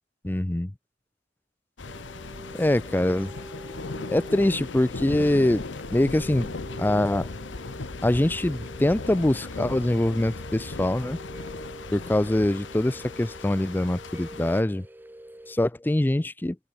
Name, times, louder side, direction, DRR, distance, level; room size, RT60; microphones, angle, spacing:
voice 1, 0.2-0.7 2.5-3.3 4.1-6.5 6.8-7.3 8.0-11.2 11.9-14.9 15.5-16.6, left 1 dB, 10° left, 0.4 m, -24 dB
sound 1, 1.8-14.6, left 3 dB, 80° left, 1.0 m, -37 dB
sound 2, 1.8-15.5, right 1 dB, 10° right, 0.8 m, -45 dB
head